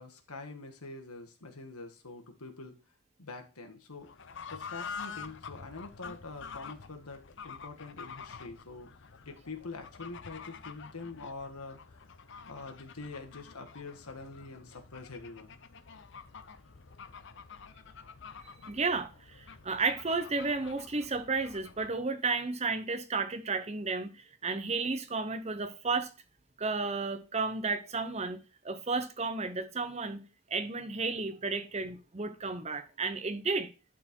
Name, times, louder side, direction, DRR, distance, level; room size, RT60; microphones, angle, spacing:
voice 1, 0.0-2.7 3.2-4.1 4.5-8.9 9.2-15.6, left 3 dB, 85° left, 1.7 m, -45 dB
Fowl / Bird, 4.0-22.0, left 6 dB, 55° left, 0.7 m, -48 dB
voice 2, 18.7-26.1 26.6-33.7, right 4 dB, 30° right, 0.8 m, -33 dB
11.5 x 4.5 x 4.5 m
head